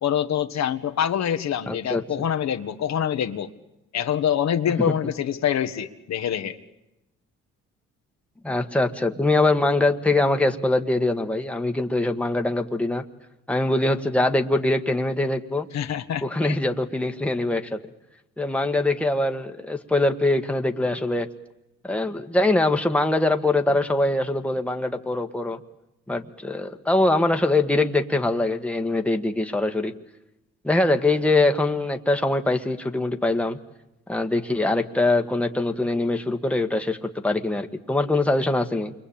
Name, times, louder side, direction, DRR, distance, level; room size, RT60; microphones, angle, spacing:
voice 1, 0.0-3.5 3.9-6.6 15.7-16.6, left 9 dB, 65° left, 8 dB, 1.4 m, -25 dB
voice 2, 1.7-2.0 8.4-13.0 13.5-15.7 16.2-17.8 18.4-21.3 21.8-25.6 26.1-29.9 30.6-33.6 34.1-38.9, left 2 dB, 5° left, 5 dB, 1.6 m, -23 dB
28.5 x 23.0 x 8.8 m, 0.91 s
cardioid pair, 90°, 30 cm